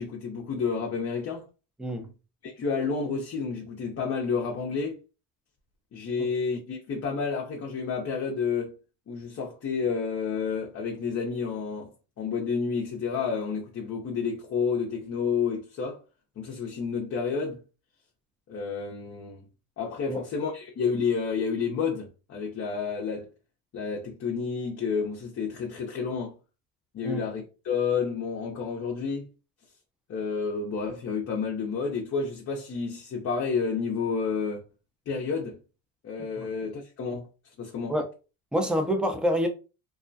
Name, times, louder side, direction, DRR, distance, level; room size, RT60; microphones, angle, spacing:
voice 1, 0.0-1.4 2.4-5.0 5.9-8.7 9.1-11.9 12.2-16.0 16.4-17.6 18.5-19.4 19.8-23.3 23.7-26.4 26.9-29.3 30.1-34.6 35.1-35.6 36.0-37.3 37.6-37.9, left 5 dB, 35° left, 0.6 m, -30 dB
voice 2, 1.8-2.1 6.2-6.3 20.1-20.2 27.0-27.2 36.4-36.5 37.9-38.1 38.5-39.5, equal, ahead, 0.5 m, -27 dB
2.3 x 2.1 x 2.6 m
supercardioid pair, 85°, 41 cm